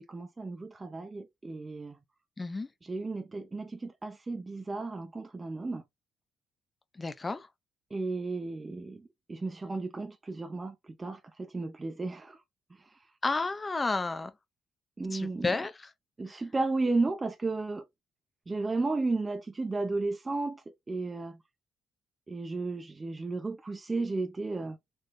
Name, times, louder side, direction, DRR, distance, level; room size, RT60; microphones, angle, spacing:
voice 1, 0.0-2.0 2.8-5.8 7.9-12.4 12.8-12.9 15.0-15.6 16.2-17.8 18.5-21.4 22.3-24.8, right 3 dB, 25° right, 0.6 m, -34 dB
voice 2, 2.4-2.7 7.0-7.5 13.2-14.3 15.1-15.7, left 3 dB, 25° left, 0.7 m, -31 dB
4.4 x 3.1 x 3.1 m
cardioid pair, 90°, 0 cm